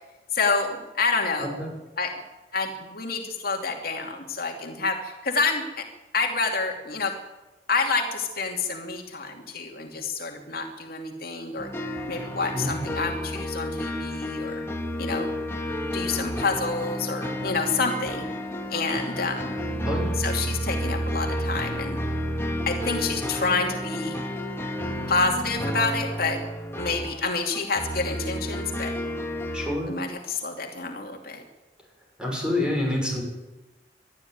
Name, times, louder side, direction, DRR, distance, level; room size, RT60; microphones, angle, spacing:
voice 1, 0.3-1.5 2.0-2.1 2.5-5.9 6.1-7.2 7.7-11.7 12.1-14.6 15.0-15.4 15.9-18.3 18.7-19.5 20.2-22.0 22.7-24.2 25.1-26.4 26.8-28.9 29.9-31.4, left 4 dB, 55° left, 2 dB, 2.6 m, -28 dB
sound 1, 11.6-29.8, equal, 15° left, 2.0 m, -31 dB
voice 2, 29.5-29.9 32.2-33.2, left 1 dB, 5° right, 0 dB, 6.3 m, -27 dB
21.5 x 12.5 x 9.4 m, 1.1 s
head